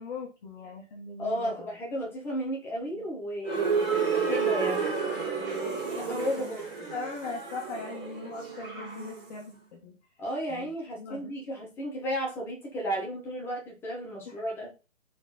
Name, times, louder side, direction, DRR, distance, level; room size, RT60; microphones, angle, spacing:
voice 1, 0.0-1.8 2.9-3.1 5.4-6.6 6.9-10.0 10.5-10.7 11.0-11.3 14.3-14.4, left 4 dB, 35° left, -3 dB, 1.6 m, -40 dB
voice 2, 1.2-3.7 4.1-4.9 5.9-6.9 10.2-14.7, equal, 5° left, -2 dB, 1.1 m, -33 dB
sound 1, 3.4-9.3, right 5 dB, 25° right, 4.0 m, -31 dB
7.3 x 4.2 x 4.3 m, 0.30 s
hypercardioid pair, 165°, 38 cm